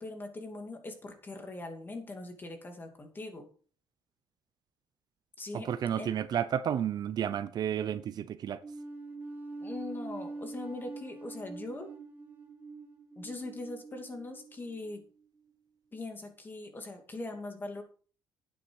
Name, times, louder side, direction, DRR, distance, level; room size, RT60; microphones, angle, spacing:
voice 1, 0.0-3.5 5.4-5.7 6.0-6.1 9.6-11.9 13.2-15.0 15.9-17.8, left 2 dB, 25° left, 2.6 m, -41 dB
voice 2, 5.5-8.6, right 9 dB, 55° right, 0.7 m, -31 dB
sound 1, 8.6-15.0, right 3 dB, 25° right, 2.0 m, -44 dB
10.0 x 9.1 x 4.8 m
cardioid pair, 125°, 8 cm